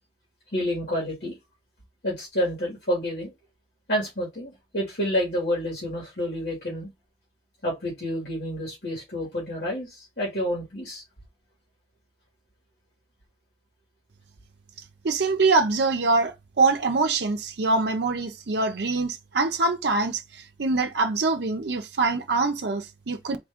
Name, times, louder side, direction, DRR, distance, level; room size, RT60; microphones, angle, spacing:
voice 1, 0.5-1.4 2.0-3.3 3.9-6.9 7.6-11.0, equal, 70° left, 2.1 m, -29 dB
voice 2, 15.0-23.4, right 3 dB, 75° right, 0.6 m, -24 dB
3.6 x 3.3 x 3.5 m
head